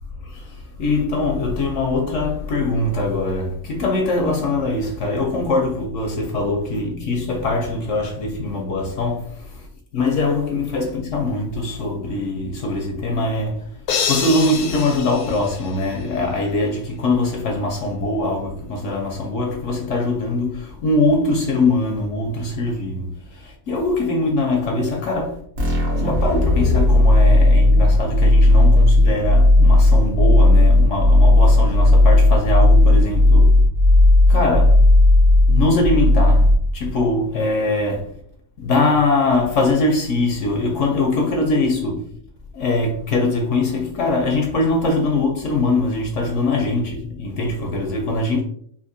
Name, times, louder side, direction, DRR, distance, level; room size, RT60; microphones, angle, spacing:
voice 1, 0.2-9.7 9.9-13.6 14.1-25.4 26.0-33.6 34.3-34.8 35.5-38.1 38.6-42.1 42.5-48.4, left 2 dB, 65° left, 0.8 m, -22 dB
sound 1, 13.9-16.2, left 6 dB, 90° left, 1.2 m, -27 dB
sound 2, 25.6-37.0, left 1 dB, 50° right, 0.9 m, -14 dB
3.5 x 2.7 x 2.5 m
omnidirectional pair, 1.6 m